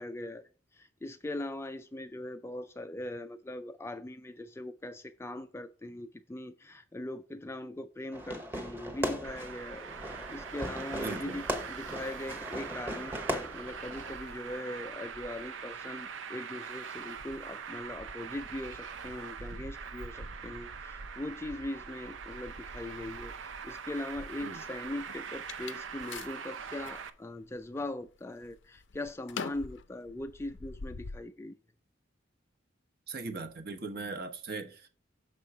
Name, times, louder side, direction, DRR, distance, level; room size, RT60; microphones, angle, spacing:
voice 1, 0.0-31.6, left 1 dB, 15° left, 0.3 m, -41 dB
Fireworks, 8.1-14.1, equal, 10° right, 1.0 m, -38 dB
Traffic noise roadway noise, 9.2-27.1, right 6 dB, 75° right, 0.7 m, -43 dB
voice 2, 11.0-11.4 24.4-24.6 33.1-34.9, right 3 dB, 50° right, 1.0 m, -39 dB
sound 1, 24.3-27.0 27.6-28.1 28.4-31.2, left 5 dB, 70° left, 0.5 m, -44 dB
6.6 x 5.4 x 4.6 m
head